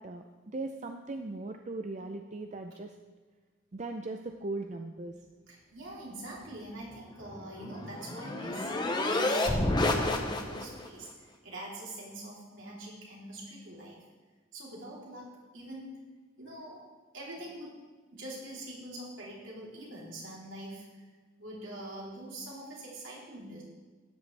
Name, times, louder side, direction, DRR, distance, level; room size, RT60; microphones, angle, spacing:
voice 1, 0.0-3.0 3.7-5.1, right 2 dB, 35° right, 5 dB, 0.5 m, -38 dB
voice 2, 5.5-14.0 14.5-16.0 16.4-16.9 17.1-17.8 18.1-21.0 21.4-23.6, right 1 dB, 70° right, -5 dB, 3.4 m, -44 dB
sound 1, 7.2-10.9, left 2 dB, 20° left, 0.8 m, -30 dB
13.0 x 9.9 x 3.3 m, 1.4 s
head